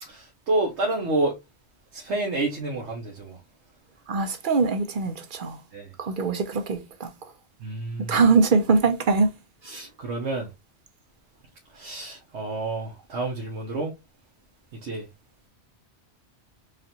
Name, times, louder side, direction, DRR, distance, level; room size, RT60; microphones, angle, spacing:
voice 1, 0.0-1.4 1.9-3.4 5.7-5.9 7.6-8.2 9.6-10.5 11.7-13.9 14.8-15.1, right 2 dB, 80° right, 1.1 m, -29 dB
voice 2, 4.1-5.6 6.0-7.1 8.1-9.3, right 4 dB, 55° right, 0.7 m, -22 dB
4.9 x 2.5 x 2.8 m
omnidirectional pair, 1.1 m